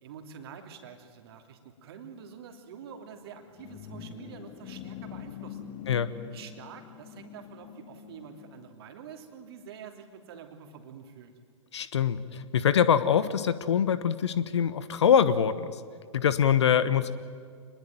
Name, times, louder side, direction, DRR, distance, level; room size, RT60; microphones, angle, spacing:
voice 1, 0.0-5.7 6.3-11.3, right 7 dB, 50° right, 5 dB, 3.0 m, -47 dB
sound 1, 3.1-8.7, left 9 dB, 35° left, 2.1 m, -45 dB
voice 2, 11.7-15.8 16.1-17.1, left 8 dB, 60° left, 14 dB, 1.1 m, -24 dB
26.0 x 21.0 x 9.2 m, 2.1 s
figure-of-eight pair, 110°, 16 cm